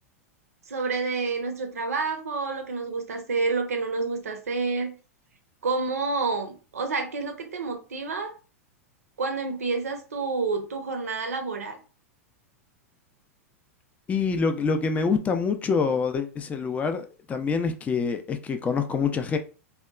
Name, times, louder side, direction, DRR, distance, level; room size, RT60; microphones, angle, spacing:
voice 1, 0.7-4.9 5.6-8.3 9.2-11.8, right 4 dB, 80° right, 0.6 m, -29 dB
voice 2, 14.1-19.4, left 5 dB, 20° left, 0.3 m, -26 dB
2.7 x 2.2 x 2.3 m
hypercardioid pair, 100°, 8 cm